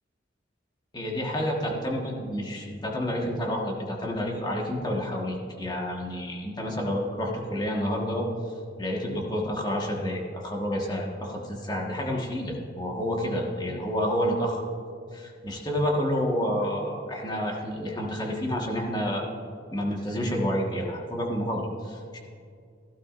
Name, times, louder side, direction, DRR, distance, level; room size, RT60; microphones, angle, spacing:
voice 1, 0.9-8.2 8.8-14.6 15.1-19.3 19.7-22.2, equal, 25° left, -1 dB, 1.5 m, -29 dB
15.5 x 12.0 x 2.5 m, 2.3 s
head